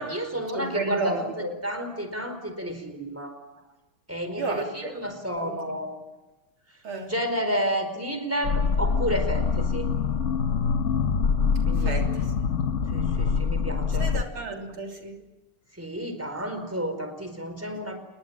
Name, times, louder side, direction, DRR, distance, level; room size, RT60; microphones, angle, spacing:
voice 1, 0.0-3.3 4.1-5.9 7.1-9.9 11.7-12.0 12.9-14.2 15.7-18.0, equal, 5° right, 7 dB, 4.5 m, -31 dB
voice 2, 0.5-1.5 4.4-5.0 5.4-5.7 6.8-7.1 11.8-12.3 14.0-15.2, right 3 dB, 70° right, 2 dB, 4.0 m, -32 dB
sound 1, 8.4-14.2, left 5 dB, 45° left, 1.0 m, -25 dB
28.5 x 21.5 x 7.5 m, 1.1 s
omnidirectional pair, 2.4 m